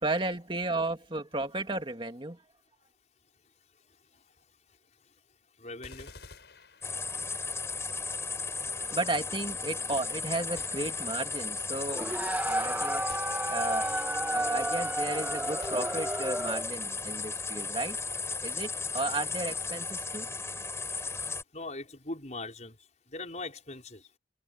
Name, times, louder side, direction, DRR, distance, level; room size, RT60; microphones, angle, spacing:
voice 1, 0.0-2.4 8.8-13.0 13.5-13.9 14.3-18.0 18.4-20.3, right 2 dB, 30° right, 2.3 m, -34 dB
voice 2, 5.6-6.1 21.5-22.7 23.1-24.0, left 2 dB, 40° left, 5.7 m, -40 dB
sound 1, 5.8-7.5 10.6-11.4 13.1-14.0 15.6-16.5, left 3 dB, 70° left, 7.6 m, -52 dB
sound 2, 6.8-21.4, left 4 dB, 15° left, 5.4 m, -35 dB
sound 3, 11.9-16.8, right 1 dB, 10° right, 1.8 m, -32 dB
head